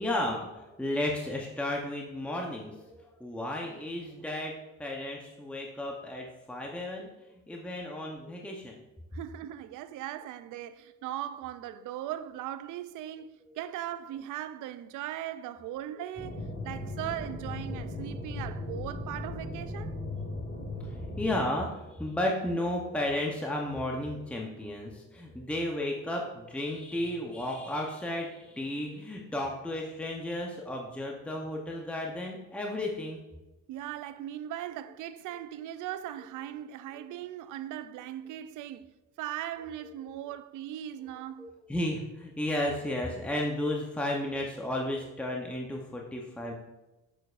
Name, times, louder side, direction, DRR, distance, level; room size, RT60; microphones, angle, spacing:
voice 1, 0.0-4.5 4.8-7.1 7.5-8.8 17.7-17.8 21.2-33.2 41.4-46.5, left 1 dB, 5° left, 0.8 m, -33 dB
voice 2, 9.1-20.0 33.7-41.5, right 12 dB, 85° right, 0.5 m, -39 dB
sound 1, 16.2-21.4, left 2 dB, 35° left, 1.9 m, -37 dB
6.8 x 6.2 x 2.5 m
cardioid pair, 90°, 30 cm